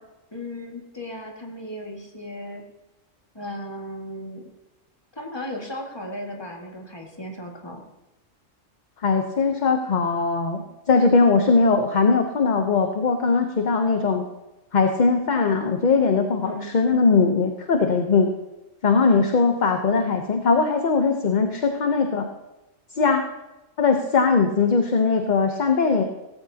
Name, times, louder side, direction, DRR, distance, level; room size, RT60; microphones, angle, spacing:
voice 1, 0.3-2.6 3.3-4.4 5.2-7.8 16.4-16.7, left 1 dB, 20° left, 0 dB, 1.9 m, -35 dB
voice 2, 9.0-10.6 10.9-14.2 14.7-18.3 18.8-22.3 22.9-23.3 23.8-26.0, left 4 dB, 40° left, 5 dB, 0.8 m, -20 dB
17.0 x 15.0 x 2.8 m, 1.0 s
omnidirectional pair, 1.3 m